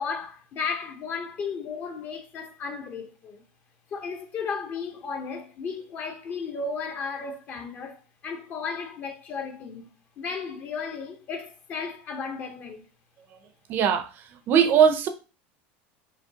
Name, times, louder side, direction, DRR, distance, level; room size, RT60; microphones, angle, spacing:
voice 1, 0.0-3.4 3.9-12.8, left 5 dB, 35° left, 0.8 m, -34 dB
voice 2, 13.7-14.1 14.5-15.1, right 8 dB, 40° right, 0.6 m, -19 dB
5.0 x 3.1 x 2.8 m
supercardioid pair, 150°, 5 cm